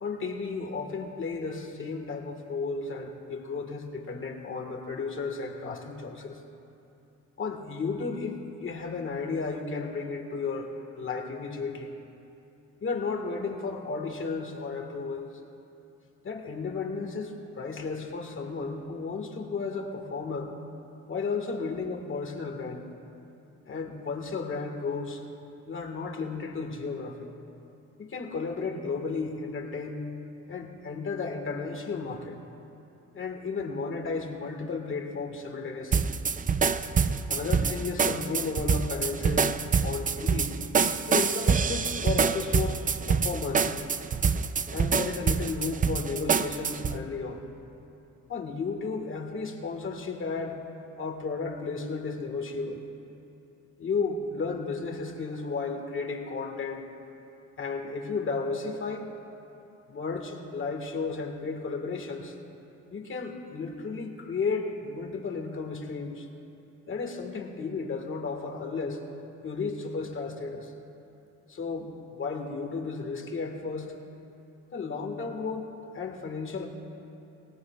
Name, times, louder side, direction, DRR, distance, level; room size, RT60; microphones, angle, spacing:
voice 1, 0.0-6.4 7.4-10.7 11.0-11.9 12.8-15.3 16.2-20.5 21.1-22.8 23.7-25.2 25.6-27.3 28.0-30.1 30.5-32.4 33.1-36.1 37.3-39.5 39.8-40.6 41.1-42.8 43.1-43.7 44.7-47.5 48.3-50.6 51.0-52.8 53.8-56.9 57.6-59.1 59.9-62.3 62.9-66.3 66.9-69.0 69.4-70.7 71.5-73.9 74.7-76.6, left 4 dB, 45° left, 2 dB, 1.7 m, -33 dB
sound 1, 35.9-47.0, right 6 dB, 25° right, 0.4 m, -26 dB
20.0 x 18.0 x 2.4 m, 2.8 s
cardioid pair, 90°, 30 cm